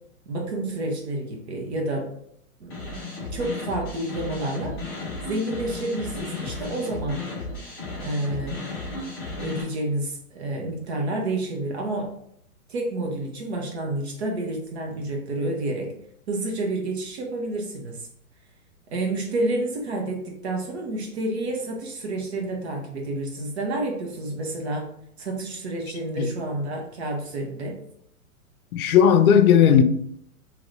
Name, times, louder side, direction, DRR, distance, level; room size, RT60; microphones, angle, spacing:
voice 1, 0.3-2.1 2.6-2.9 3.3-4.8 5.3-7.2 8.0-8.6 9.4-12.1 12.7-15.9 16.3-18.0 18.9-24.9 25.2-27.8, right 2 dB, 45° right, 0.9 m, -29 dB
sound 1, 2.7-9.6, left 2 dB, 15° left, 0.5 m, -34 dB
voice 2, 28.7-29.8, left 8 dB, 75° left, 0.5 m, -16 dB
3.0 x 2.6 x 3.1 m
hypercardioid pair, 170°, 44 cm